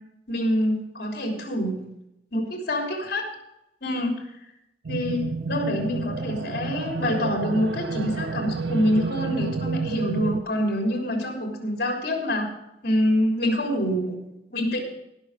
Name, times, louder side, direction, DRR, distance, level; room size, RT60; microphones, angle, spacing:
voice 1, 0.3-1.9 2.3-3.3 3.8-4.2 4.9-12.5 12.8-14.2 14.5-14.8, equal, 60° left, 1 dB, 3.4 m, -26 dB
sound 1, 4.8-10.4, right 4 dB, 90° right, 0.5 m, -30 dB
18.5 x 6.4 x 5.0 m, 0.84 s
head